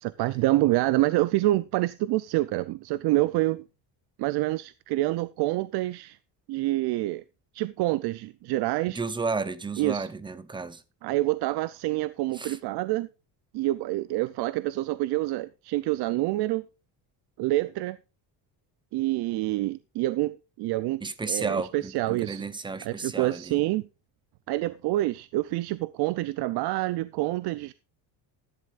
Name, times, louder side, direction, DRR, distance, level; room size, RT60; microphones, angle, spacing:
voice 1, 0.0-3.7 4.2-6.2 6.5-7.2 7.5-9.0 9.8-10.1 11.0-13.1 13.5-16.7 17.4-18.0 18.9-22.4 22.8-23.9 24.5-27.7, right 17 dB, 65° right, 0.6 m, -27 dB
voice 2, 8.9-10.8 12.3-12.6 21.0-23.6, right 4 dB, 10° right, 0.7 m, -32 dB
13.5 x 11.0 x 2.5 m
cardioid pair, 150°, 42 cm